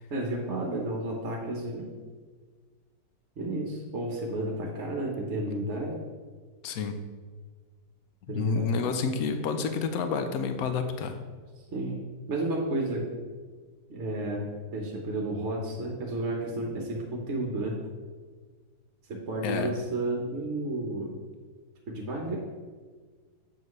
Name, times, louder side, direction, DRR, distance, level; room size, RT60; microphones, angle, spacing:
voice 1, 0.1-1.9 3.4-6.0 8.3-9.1 11.7-12.0 12.3-13.1 13.9-17.8 19.1-21.1 21.9-22.4, right 1 dB, 45° right, 0 dB, 1.0 m, -32 dB
voice 2, 6.6-7.0 8.3-11.2 19.4-19.7, left 5 dB, 65° left, 7 dB, 0.9 m, -29 dB
7.3 x 7.2 x 3.1 m, 1.5 s
omnidirectional pair, 2.1 m